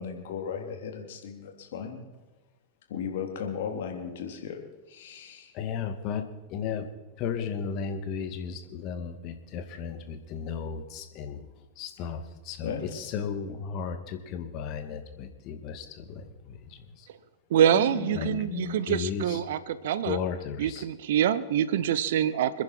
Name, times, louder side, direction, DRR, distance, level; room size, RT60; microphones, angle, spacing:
voice 1, 0.0-2.0 2.9-4.6 4.9-5.5 12.6-13.1 17.7-19.4, left 7 dB, 65° left, 3 dB, 3.3 m, -36 dB
voice 2, 5.5-6.2 6.5-6.9 7.2-11.4 11.8-12.2 12.4-16.7 18.2-18.3 18.9-19.4 20.0-20.8, left 7 dB, 45° left, 7 dB, 2.4 m, -34 dB
voice 3, 17.5-20.2 20.6-22.5, right 9 dB, 65° right, 16 dB, 1.0 m, -25 dB
27.5 x 10.5 x 4.6 m, 1.2 s
figure-of-eight pair, 90°, 0 cm